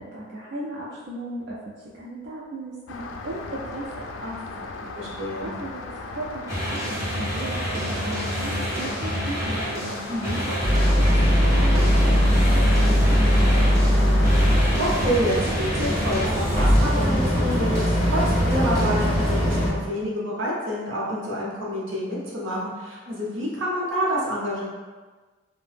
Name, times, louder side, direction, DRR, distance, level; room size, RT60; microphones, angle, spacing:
voice 1, 0.0-4.9 5.4-5.8 6.1-10.0 10.4-10.6 10.9-14.2, right 1 dB, 60° right, -6 dB, 0.4 m, -36 dB
Rain, 2.9-15.2, left 3 dB, 75° left, 0.3 m, -37 dB
voice 2, 4.9-5.5 10.1-10.4 14.5-17.8 18.1-24.7, equal, 85° right, -4 dB, 0.8 m, -28 dB
sound 1, 6.5-19.6, equal, 15° right, 0.9 m, -29 dB
Boat Water vehicle, 10.6-19.7, equal, 10° left, 0.9 m, -20 dB
2.7 x 2.1 x 3.3 m, 1.3 s
head